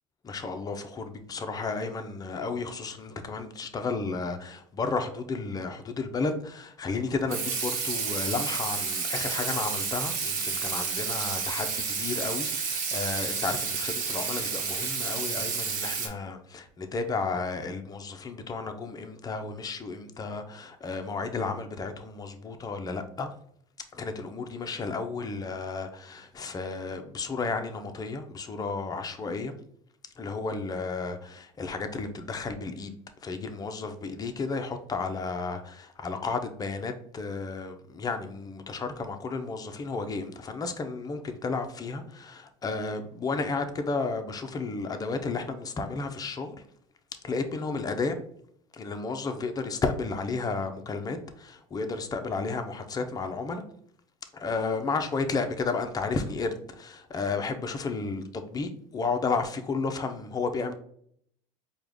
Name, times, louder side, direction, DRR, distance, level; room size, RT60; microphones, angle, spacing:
voice 1, 0.2-23.3 23.9-29.5 30.2-32.9 33.2-46.6 47.2-48.2 48.7-53.6 54.3-60.7, left 4 dB, 20° left, 0.6 m, -32 dB
Water tap faucet / Sink (filling or washing), 7.3-16.1, right 5 dB, 50° right, 1.1 m, -30 dB
4.6 x 2.3 x 3.4 m
hypercardioid pair, 85°, 17 cm